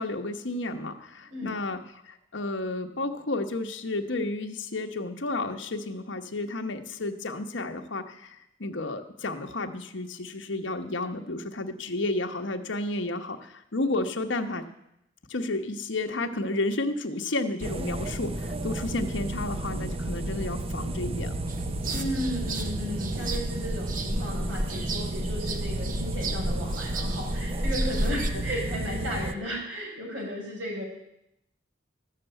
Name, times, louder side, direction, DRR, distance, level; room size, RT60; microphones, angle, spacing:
voice 1, 0.0-1.8 2.1-14.6 15.3-21.5, left 2 dB, 80° left, 5 dB, 1.1 m, -32 dB
sound 1, 17.6-29.3, right 1 dB, 30° right, 0.6 m, -32 dB
sound 2, 21.5-28.3, right 1 dB, 45° right, 1.0 m, -32 dB
voice 2, 21.9-30.8, equal, 90° right, -2 dB, 5.6 m, -34 dB
13.5 x 6.8 x 9.0 m, 0.83 s
head